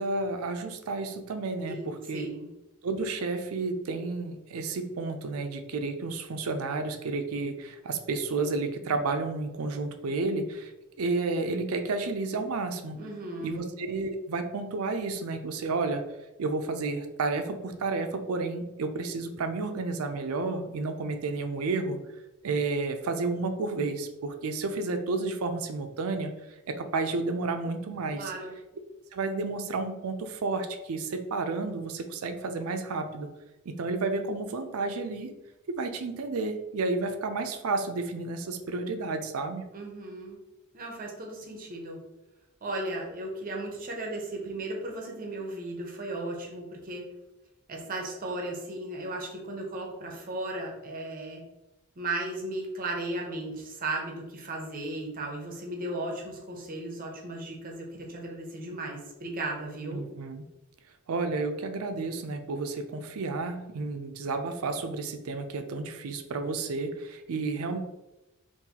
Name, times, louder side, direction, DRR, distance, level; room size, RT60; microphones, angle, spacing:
voice 1, 0.0-2.3 2.8-10.7 11.0-13.0 13.4-16.0 16.4-22.0 22.4-26.3 26.7-28.3 29.1-33.3 33.7-35.3 35.8-39.6 59.9-60.4 61.1-67.8, right 3 dB, 75° right, 7 dB, 0.4 m, -31 dB
voice 2, 1.6-2.5 12.9-13.6 28.1-28.6 39.7-40.4 40.7-42.0 42.6-47.1 47.7-51.4 52.0-60.0, right 2 dB, 40° right, 1 dB, 0.7 m, -36 dB
3.8 x 2.6 x 2.8 m, 1.0 s
head